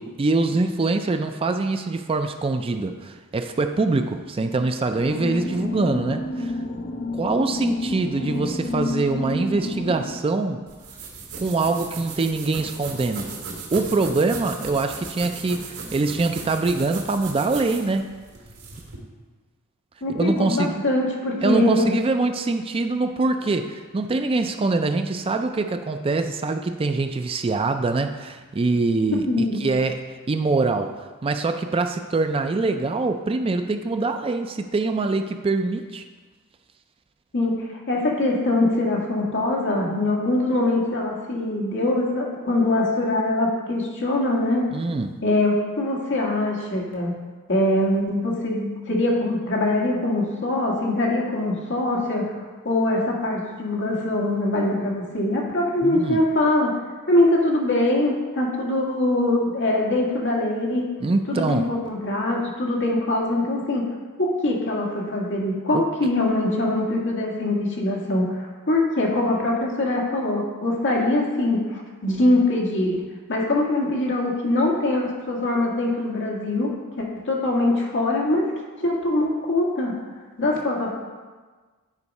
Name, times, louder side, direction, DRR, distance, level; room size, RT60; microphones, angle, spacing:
voice 1, 0.0-6.5 7.1-10.6 11.4-13.3 13.7-18.1 20.1-20.8 21.4-29.3 29.6-36.0 44.7-45.2 55.8-56.2 61.0-61.7 65.7-65.8, right 3 dB, 25° right, 7 dB, 0.4 m, -24 dB
sound 1, 4.9-10.2, left 2 dB, 35° left, 0.5 m, -29 dB
sound 2, 10.7-19.0, right 4 dB, 80° right, 2.3 m, -37 dB
voice 2, 20.0-21.9 29.2-29.7 37.3-44.6 45.2-47.1 47.5-52.2 52.6-56.7 57.1-60.9 61.3-63.8 64.2-73.0 73.3-78.4 78.8-79.9 80.4-80.9, left 2 dB, 55° left, -2 dB, 1.7 m, -23 dB
9.8 x 4.6 x 5.3 m, 1.4 s
head